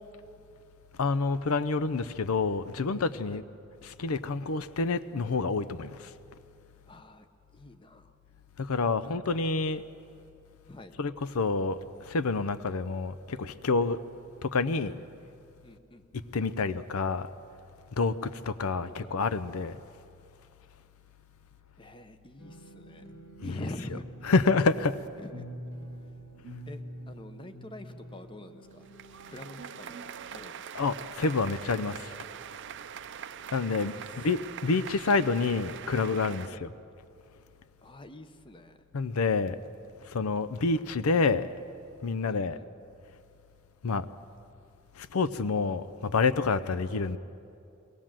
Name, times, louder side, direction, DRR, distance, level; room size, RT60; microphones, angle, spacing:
voice 1, 1.0-3.4 3.8-6.1 8.6-9.8 11.0-14.0 14.4-15.0 16.3-17.3 18.0-19.8 23.4-23.7 24.2-25.0 30.7-32.1 33.5-36.7 38.9-39.6 40.0-41.5 42.0-42.6 43.8-44.1 45.0-47.2, left 4 dB, 90° left, 0.6 m, -28 dB
voice 2, 6.8-7.3 7.5-8.2 9.0-9.2 10.7-10.9 15.6-16.0 18.5-19.1 21.8-23.0 23.4-24.3 25.2-25.5 26.7-28.9 29.2-30.0 30.3-30.9 33.7-34.0 36.4-36.6 37.8-38.8 42.2-42.7, left 1 dB, 25° left, 0.9 m, -46 dB
sound 1, 22.4-30.4, right 1 dB, 70° left, 6.8 m, -46 dB
sound 2, 28.7-36.5, right 8 dB, 55° right, 0.5 m, -43 dB
22.5 x 18.5 x 7.5 m
head